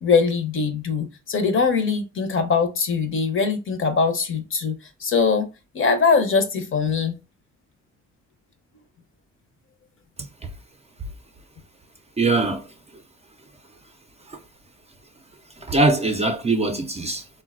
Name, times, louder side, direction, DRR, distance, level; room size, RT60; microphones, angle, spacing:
voice 1, 0.0-5.5 5.7-7.1, left 5 dB, 45° left, 0.7 m, -22 dB
voice 2, 12.2-12.6 14.3-14.4 15.7-17.2, right 2 dB, 20° right, 0.4 m, -21 dB
3.7 x 2.2 x 2.4 m
cardioid pair, 90°, 30 cm